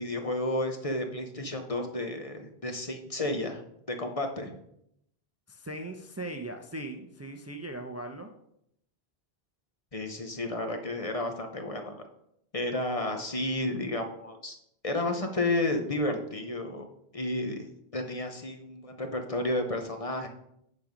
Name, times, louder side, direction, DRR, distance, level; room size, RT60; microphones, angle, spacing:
voice 1, 0.0-3.6 4.0-4.5 9.9-11.9 12.5-14.6 14.8-16.9 17.1-17.7 17.9-20.3, left 2 dB, 35° left, 5 dB, 0.9 m, -31 dB
voice 2, 5.5-8.3, right 1 dB, 20° right, 4 dB, 0.6 m, -39 dB
8.8 x 5.3 x 5.2 m, 0.75 s
omnidirectional pair, 1.0 m